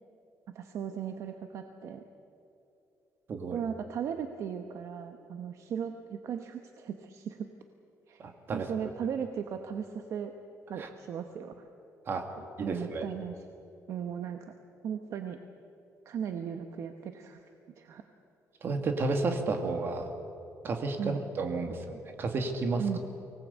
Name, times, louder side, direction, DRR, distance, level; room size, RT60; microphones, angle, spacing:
voice 1, 0.5-2.0 3.5-7.5 8.1-8.2 8.5-10.3 10.7-11.7 12.6-13.4 13.9-14.5 14.8-15.4 16.0-17.4 17.8-18.0 21.0-21.2 22.8-23.0, right 8 dB, 55° right, 6 dB, 1.1 m, -37 dB
voice 2, 8.2-8.7 10.8-10.9 12.1-12.3 12.6-13.1 18.6-20.1 20.6-23.0, right 3 dB, 40° right, 5 dB, 2.2 m, -32 dB
24.5 x 18.5 x 8.3 m, 2.8 s
cardioid pair, 170°, 6 cm